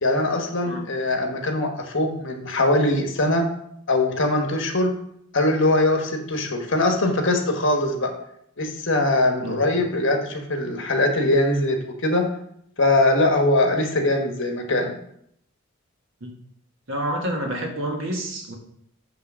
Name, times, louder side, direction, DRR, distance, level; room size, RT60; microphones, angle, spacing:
voice 1, 0.0-3.5 3.9-4.9 5.3-8.1 8.6-12.2 12.8-15.0, left 2 dB, 60° left, 3 dB, 1.4 m, -22 dB
voice 2, 16.9-18.5, right 1 dB, 65° right, 2 dB, 1.6 m, -28 dB
8.7 x 3.5 x 6.1 m, 0.71 s
head